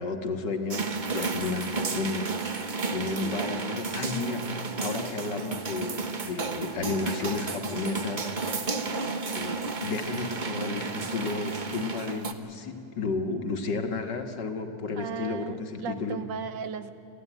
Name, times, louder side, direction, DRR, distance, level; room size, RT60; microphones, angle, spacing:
voice 1, 0.0-8.7 9.3-16.2, left 4 dB, 70° left, 5 dB, 2.2 m, -33 dB
sound 1, 0.7-12.3, right 4 dB, 35° right, 0.9 m, -32 dB
voice 2, 8.7-9.1 15.0-16.9, right 7 dB, 85° right, 11 dB, 1.7 m, -36 dB
25.5 x 15.0 x 9.1 m, 2.9 s
omnidirectional pair, 1.9 m